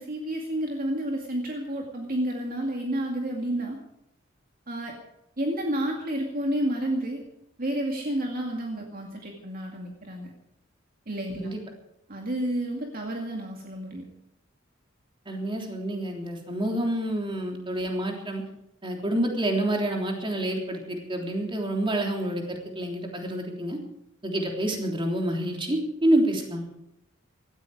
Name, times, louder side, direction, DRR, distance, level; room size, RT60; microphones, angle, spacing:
voice 1, 0.0-3.8 4.7-4.9 5.4-7.2 7.6-10.3 11.1-11.5 12.1-14.0, right 1 dB, 45° right, 1 dB, 2.2 m, -30 dB
voice 2, 15.2-18.4 18.8-23.8 24.2-26.7, right 1 dB, 25° right, 1 dB, 3.3 m, -28 dB
17.5 x 14.0 x 4.9 m, 0.83 s
head